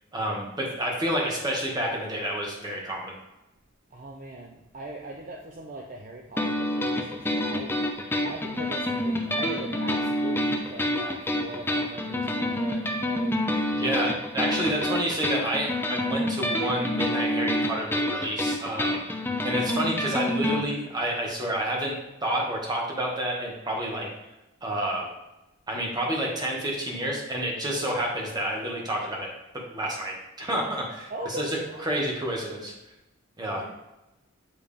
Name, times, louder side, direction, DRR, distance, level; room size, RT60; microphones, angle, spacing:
voice 1, 0.1-3.1 13.7-19.0 19.4-24.1 24.6-25.1 25.7-29.3 29.7-31.6 31.8-32.7 33.4-33.7, right 1 dB, 20° right, -2 dB, 1.3 m, -29 dB
voice 2, 3.9-7.8 8.2-13.6 31.1-32.2 33.6-33.7, right 1 dB, 40° right, 0 dB, 0.5 m, -40 dB
sound 1, 6.4-20.6, left 1 dB, 10° left, 0.5 m, -28 dB
8.6 x 3.4 x 3.5 m, 0.96 s
head